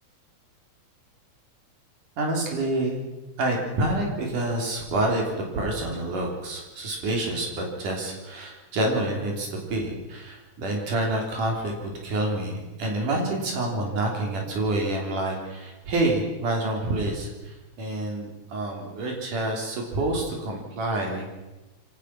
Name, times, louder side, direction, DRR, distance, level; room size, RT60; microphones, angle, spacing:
voice 1, 2.2-3.0 3.4-21.2, right 2 dB, 80° right, 0 dB, 5.1 m, -28 dB
24.5 x 18.0 x 6.1 m, 1.1 s
omnidirectional pair, 3.6 m